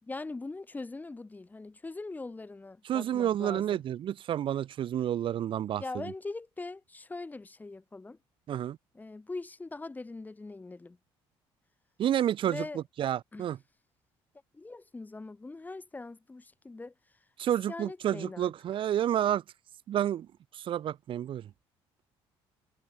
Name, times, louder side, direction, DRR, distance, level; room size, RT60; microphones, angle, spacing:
voice 1, 0.0-3.8 5.8-8.2 8.9-11.0 12.5-12.8 13.3-13.5 14.5-16.9 17.7-18.5, left 3 dB, 15° left, 5.6 m, -41 dB
voice 2, 2.8-6.1 8.5-8.8 12.0-13.6 17.4-19.4 19.9-20.3 20.5-21.5, right 11 dB, 55° right, 3.4 m, -30 dB
cardioid pair, 110°, 10 cm